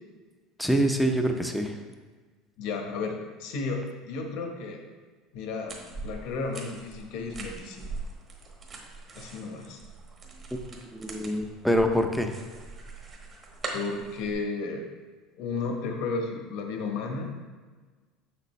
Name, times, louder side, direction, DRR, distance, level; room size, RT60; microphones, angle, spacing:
voice 1, 0.6-1.8 10.5-10.6 10.9-12.3, equal, ahead, 4 dB, 0.6 m, -25 dB
voice 2, 2.6-3.8 4.1-4.8 5.3-5.7 6.0-7.9 9.1-9.8 13.7-14.8 15.4-17.3, left 4 dB, 70° left, 2 dB, 1.1 m, -33 dB
sound 1, 5.7-14.3, right 3 dB, 30° right, 1.1 m, -42 dB
6.8 x 6.1 x 3.1 m, 1.4 s
cardioid pair, 135°, 0 cm